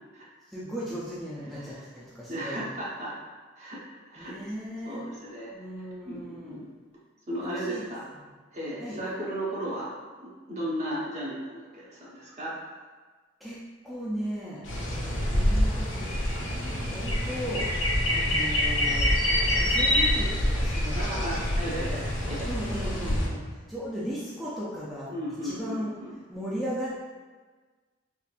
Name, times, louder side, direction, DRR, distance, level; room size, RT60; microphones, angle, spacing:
voice 1, 0.5-2.6 4.2-5.0 5.5-6.6 7.4-7.9 8.2-8.3 8.8-9.0 13.4-13.6 13.8-17.8 18.1-19.1 19.6-21.0 21.3-22.0 22.4-25.1 25.4-25.9 26.3-27.0, equal, ahead, -9 dB, 0.5 m, -36 dB
voice 2, 2.3-3.2 3.6-3.8 4.1-4.3 4.8-5.5 6.0-6.7 7.3-8.0 8.5-9.9 10.2-12.5 20.9-22.5 25.1-26.1, right 1 dB, 40° right, -6 dB, 0.9 m, -35 dB
sound 1, 14.6-23.3, left 1 dB, 85° left, 0.8 m, -26 dB
4.1 x 2.5 x 2.4 m, 1.4 s
head